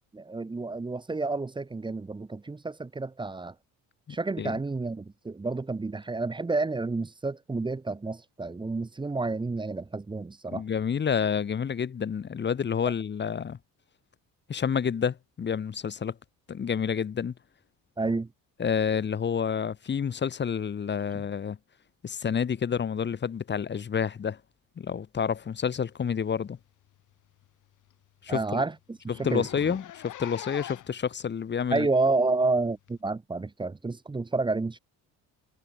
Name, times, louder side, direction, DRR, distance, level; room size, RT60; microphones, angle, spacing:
voice 1, 0.1-3.5 4.1-10.6 18.0-18.3 21.1-21.2 28.3-29.7 31.7-34.8, right 3 dB, 15° right, 1.5 m, -30 dB
voice 2, 4.1-4.5 10.5-13.6 14.5-16.1 16.5-17.3 18.6-21.6 22.0-24.4 24.8-26.6 28.2-28.6 29.2-31.9, left 7 dB, 30° left, 2.6 m, -29 dB
Zipper (clothing), 26.4-26.6 27.0-27.1 27.4-27.5 27.9-28.0 28.2-28.4 29.0-31.0 31.8-31.9 32.9-33.0, left 13 dB, 60° left, 5.3 m, -43 dB
cardioid pair, 150°, 35 cm